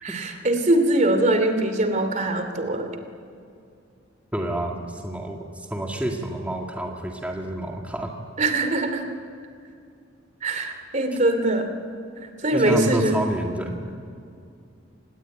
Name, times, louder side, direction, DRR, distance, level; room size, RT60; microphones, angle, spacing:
voice 1, 0.0-2.9 8.4-9.0 10.4-11.7 12.2-13.2, right 1 dB, 40° right, 8 dB, 2.7 m, -22 dB
voice 2, 4.3-8.1 11.1-11.2 12.5-13.9, right 1 dB, 5° right, 0 dB, 2.1 m, -29 dB
27.0 x 19.0 x 9.2 m, 2.4 s
head